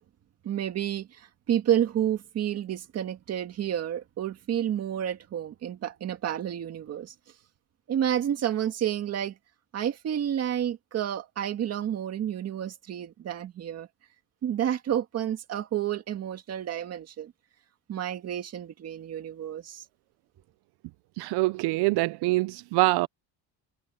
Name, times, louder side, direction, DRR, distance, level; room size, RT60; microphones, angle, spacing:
voice 1, 0.4-7.1 7.9-9.4 9.7-13.9 14.4-17.3 17.9-19.8, right 10 dB, 40° right, 2.0 m, -30 dB
voice 2, 21.2-23.1, right 21 dB, 75° right, 0.5 m, -24 dB
cardioid pair, 180°, 40 cm